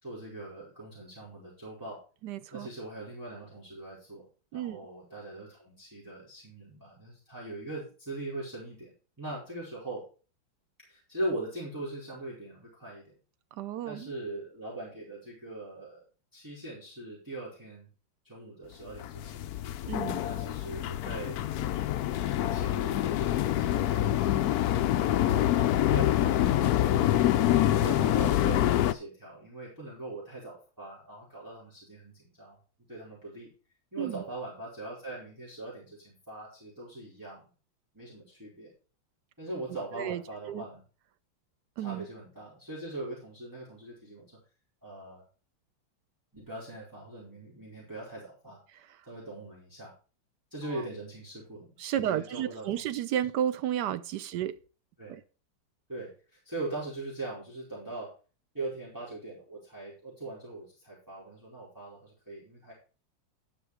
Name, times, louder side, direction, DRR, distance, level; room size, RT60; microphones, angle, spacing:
voice 1, 0.0-2.0 2.5-4.2 4.5-8.9 9.2-10.0 10.9-13.1 13.8-16.0 16.3-17.9 18.2-19.4 20.2-21.4 22.5-24.4 25.0-25.5 25.9-27.1 27.7-32.6 32.9-33.5 33.9-37.4 37.9-38.7 39.4-40.8 41.8-44.3 44.8-45.2 46.3-48.6 49.1-49.9 50.5-52.9 55.0-55.2 55.9-56.1 56.4-58.1 58.5-62.7, right 2 dB, 10° right, 4.2 m, -41 dB
voice 2, 2.2-2.7 4.5-4.8 13.5-14.1 19.9-20.2 34.0-34.2 39.9-40.2 40.5-40.6 41.8-42.1 48.7-49.0 50.7-50.8 51.8-54.6 55.1-55.2, right 10 dB, 70° right, 1.1 m, -32 dB
sound 1, 19.0-28.9, left 12 dB, 80° left, 0.8 m, -26 dB
11.0 x 6.1 x 4.7 m
omnidirectional pair, 2.2 m